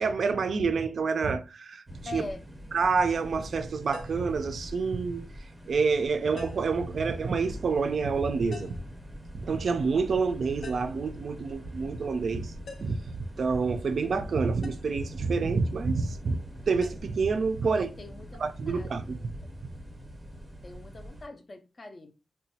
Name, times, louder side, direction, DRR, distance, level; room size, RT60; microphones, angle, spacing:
voice 1, 0.0-1.8 2.1-2.2 2.7-5.3 5.7-8.7 9.3-12.5 12.8-16.4 16.7-17.9 18.4-19.2, right 4 dB, 55° right, 0.3 m, -28 dB
sound 1, 1.9-21.2, equal, 10° right, 0.6 m, -43 dB
voice 2, 2.1-2.4 17.6-19.5 20.6-22.1, left 2 dB, 30° left, 0.4 m, -43 dB
sound 2, 3.9-4.3 6.4-6.8 8.5-8.9 10.6-11.0 12.7-13.1 14.6-14.9 16.8-17.0, left 4 dB, 70° left, 0.6 m, -44 dB
3.9 x 2.2 x 2.7 m
wide cardioid pair, 175°, 0 cm